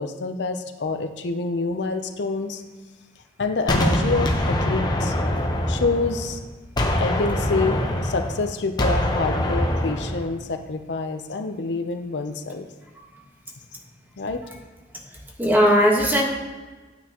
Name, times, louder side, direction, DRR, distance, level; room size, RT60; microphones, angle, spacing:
voice 1, 0.0-2.6 3.4-5.1 5.7-6.4 7.0-12.7 14.2-14.4, left 3 dB, 75° left, 6 dB, 0.6 m, -27 dB
Gunshot gunfire, 3.7-6.4 6.8-10.3, left 1 dB, 25° left, 0.9 m, -24 dB
voice 2, 15.4-16.2, equal, 10° right, -1 dB, 1.3 m, -18 dB
9.3 x 8.7 x 2.9 m, 1.3 s
head